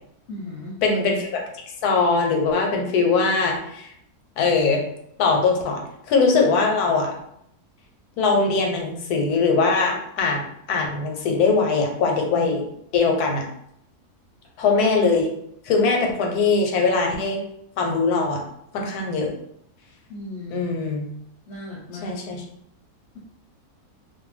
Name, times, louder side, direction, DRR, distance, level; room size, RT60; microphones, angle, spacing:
voice 1, 0.3-0.7 20.1-20.7 21.5-22.2, left 2 dB, 60° left, -5 dB, 0.8 m, -36 dB
voice 2, 0.8-1.4 1.8-3.9 4.4-4.8 5.2-7.1 8.2-12.6 12.9-13.4 14.6-15.3 15.6-17.4 17.8-18.4 18.7-19.3 20.5-21.1 22.0-22.4, left 4 dB, 85° left, 1 dB, 1.1 m, -21 dB
2.5 x 2.2 x 3.1 m, 0.73 s
omnidirectional pair, 1.6 m